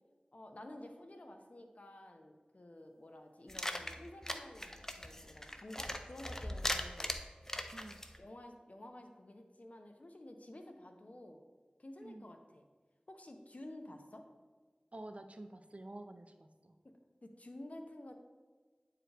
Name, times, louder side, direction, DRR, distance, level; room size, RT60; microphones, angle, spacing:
voice 1, 0.3-7.2 8.2-11.4 11.8-12.6 13.1-14.2 17.2-18.1, left 1 dB, 60° left, 5 dB, 0.7 m, -51 dB
sound 1, 3.5-8.2, left 1 dB, 20° left, 0.5 m, -40 dB
voice 2, 14.9-16.7, right 1 dB, 50° right, 7 dB, 0.5 m, -49 dB
8.7 x 4.7 x 3.3 m, 1.4 s
wide cardioid pair, 50°, 3 cm